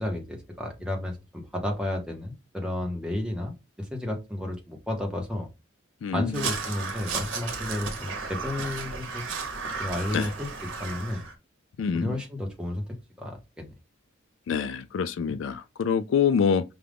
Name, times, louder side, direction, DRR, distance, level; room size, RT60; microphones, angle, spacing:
voice 1, 0.0-5.5 6.1-9.2 9.8-11.2 11.9-12.8 13.2-13.7, left 1 dB, 5° right, 0.7 m, -32 dB
voice 2, 6.0-6.4 10.1-10.3 11.8-12.1 14.5-16.6, left 6 dB, 70° left, 0.3 m, -25 dB
Crow, 6.3-11.3, right 4 dB, 75° right, 1.0 m, -34 dB
5.0 x 2.3 x 3.3 m
head